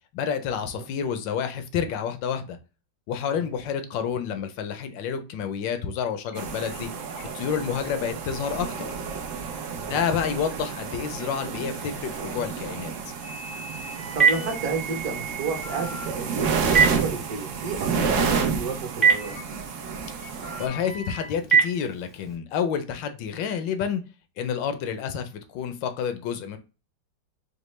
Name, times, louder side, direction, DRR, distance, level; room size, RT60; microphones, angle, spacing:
voice 1, 0.1-2.6 3.1-6.9 7.3-8.9 9.9-12.9 18.0-18.3 20.6-24.0 24.4-26.6, left 7 dB, 75° left, 8 dB, 1.3 m, -29 dB
sound 1, 6.3-6.4 6.7-6.8 7.1-7.6 8.1-8.4 8.8-8.9 10.5-10.6 11.0-11.3 11.7-11.8 13.2-16.1 16.6-16.9 17.7-17.8 18.0-18.1 19.2-19.6 20.1-21.3, right 1 dB, 60° left, 0.5 m, -39 dB
sound 2, 6.3-20.7, right 6 dB, 85° right, 0.6 m, -30 dB
voice 2, 9.7-10.0 14.1-19.3, right 4 dB, 55° right, 3 dB, 1.4 m, -32 dB
Telephone, 13.5-22.4, right 6 dB, ahead, 0.6 m, -27 dB
5.1 x 2.1 x 3.1 m, 0.32 s
omnidirectional pair, 2.1 m